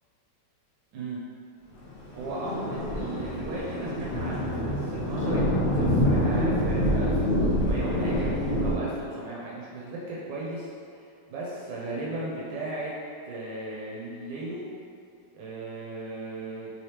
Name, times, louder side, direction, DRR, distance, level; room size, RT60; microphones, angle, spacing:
Thunder, 1.9-8.8, equal, 55° left, 0.8 m, -26 dB
voice 1, 2.1-5.4 5.7-12.9 13.3-14.7 15.3-16.7, right 2 dB, 90° right, -5 dB, 1.3 m, -36 dB
3.3 x 3.2 x 2.8 m, 2.4 s
omnidirectional pair, 1.9 m